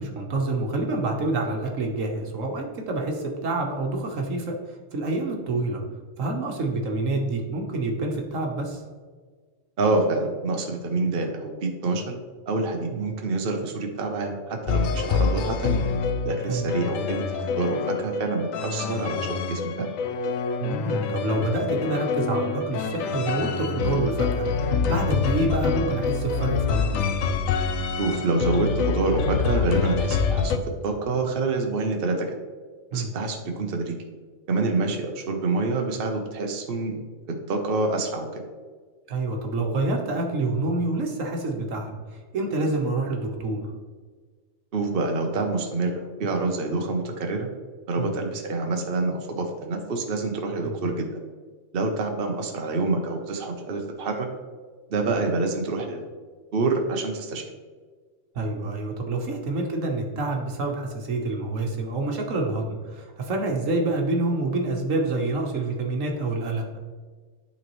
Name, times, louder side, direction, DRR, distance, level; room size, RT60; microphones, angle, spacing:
voice 1, 0.0-4.5 4.9-5.8 6.2-8.8 12.9-13.0 16.5-16.7 20.6-27.0 32.9-33.1 39.1-41.9 42.3-43.6 48.0-48.1 50.6-50.8 58.3-66.6, right 2 dB, 75° right, 1 dB, 1.5 m, -27 dB
voice 2, 9.8-12.1 12.5-15.8 16.2-19.9 28.0-32.4 32.9-33.9 34.5-37.0 37.3-38.4 44.7-47.5 47.9-51.1 51.7-54.3 54.9-56.0 56.5-57.4, right 3 dB, 50° right, 2 dB, 1.0 m, -27 dB
sound 1, 14.7-30.6, left 5 dB, 80° left, 1.0 m, -26 dB
11.5 x 4.1 x 3.1 m, 1.5 s
omnidirectional pair, 1.4 m